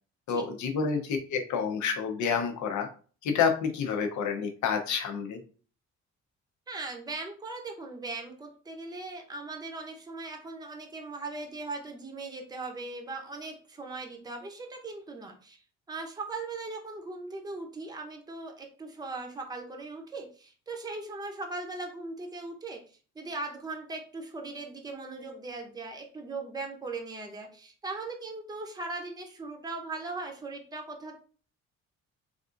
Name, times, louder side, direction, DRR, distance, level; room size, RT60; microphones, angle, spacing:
voice 1, 0.3-2.9 3.2-5.4, left 6 dB, 75° left, 4 dB, 0.7 m, -29 dB
voice 2, 6.7-15.6 15.9-22.8 23.2-31.2, right 3 dB, 15° right, 3 dB, 0.7 m, -39 dB
3.4 x 2.5 x 2.5 m, 0.39 s
cardioid pair, 90°, 30 cm